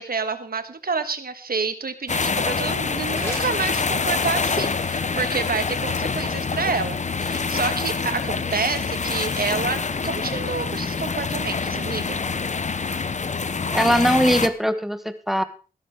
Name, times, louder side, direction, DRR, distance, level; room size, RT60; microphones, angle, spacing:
voice 1, 0.0-12.2, right 4 dB, 75° right, 10 dB, 1.5 m, -28 dB
sound 1, 2.1-14.5, left 4 dB, 50° left, 0.8 m, -26 dB
sound 2, 2.9-4.4, equal, 15° left, 4.5 m, -39 dB
voice 2, 13.7-15.4, equal, ahead, 11 dB, 1.2 m, -20 dB
16.0 x 13.0 x 3.6 m, 0.35 s
wide cardioid pair, 90°, 15 cm